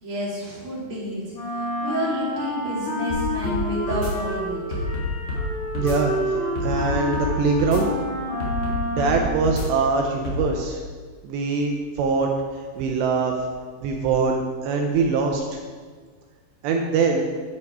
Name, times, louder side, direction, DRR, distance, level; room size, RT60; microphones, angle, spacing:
voice 1, 0.0-1.2 1.6-4.8, equal, 40° right, -7 dB, 2.1 m, -30 dB
Wind instrument woodwind instrument, 1.3-9.5, left 1 dB, 45° left, 2.2 m, -29 dB
sound 1, 3.1-3.6 3.9-4.1 4.7-5.4 5.7-6.0 6.6-7.3 7.6-7.8 8.4-9.1 9.4-9.6 10.2-10.4, left 2 dB, 65° left, 1.3 m, -28 dB
voice 2, 5.7-7.9 8.9-10.8 11.2-13.3 13.8-15.6 16.6-17.2, right 4 dB, 80° right, 1 dB, 2.6 m, -23 dB
10.5 x 5.4 x 4.8 m, 1.5 s
omnidirectional pair, 5.5 m